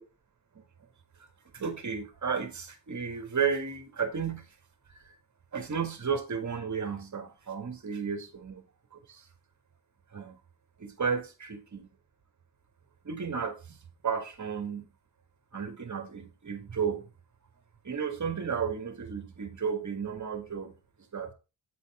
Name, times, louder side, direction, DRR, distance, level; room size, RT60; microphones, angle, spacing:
voice 1, 1.5-4.4 4.9-5.2 5.5-8.6 8.9-9.2 10.1-10.3 10.8-11.9 13.0-13.8 14.0-14.8 15.5-17.1 17.8-20.7 21.1-21.3, right 6 dB, 45° right, 1.7 m, -33 dB
8.3 x 4.1 x 4.8 m
cardioid pair, 85°, 42 cm